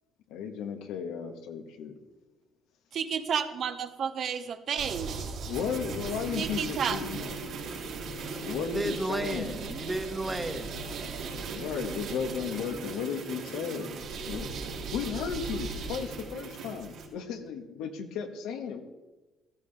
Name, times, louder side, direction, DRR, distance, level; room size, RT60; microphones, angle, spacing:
voice 1, 0.3-2.0 5.4-7.3 8.4-9.6 11.5-14.0 14.3-14.5 14.9-18.8, left 6 dB, 85° left, 1.4 m, -34 dB
voice 2, 2.9-5.3 6.4-7.0, right 7 dB, 55° right, 1.0 m, -31 dB
sound 1, 4.8-17.1, right 4 dB, 75° right, 3.5 m, -38 dB
voice 3, 8.7-10.9, right 2 dB, 15° right, 1.3 m, -33 dB
14.5 x 14.0 x 3.4 m
cardioid pair, 100°, 0 cm